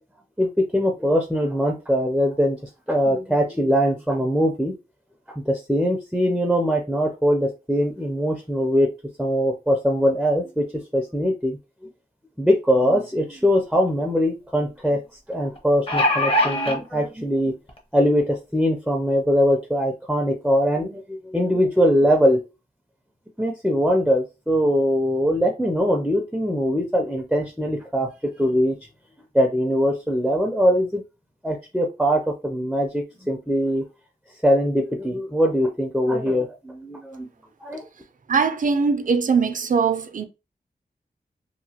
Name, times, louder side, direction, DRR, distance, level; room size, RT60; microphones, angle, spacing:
voice 1, 0.4-2.6 2.9-4.7 5.4-8.9 9.2-11.6 12.4-15.0 15.3-17.6 17.9-22.4 23.4-28.8 29.3-31.0 31.4-33.8 34.4-37.3 37.6-37.8, equal, ahead, 0.5 m, -22 dB
sound 1, 13.4-13.5 13.9-14.0 15.6-16.8 17.7-17.8 18.2-18.3, left 1 dB, 35° left, 0.8 m, -21 dB
voice 2, 38.3-40.3, right 5 dB, 55° right, 0.5 m, -21 dB
2.9 x 2.2 x 2.8 m
cardioid pair, 55°, 16 cm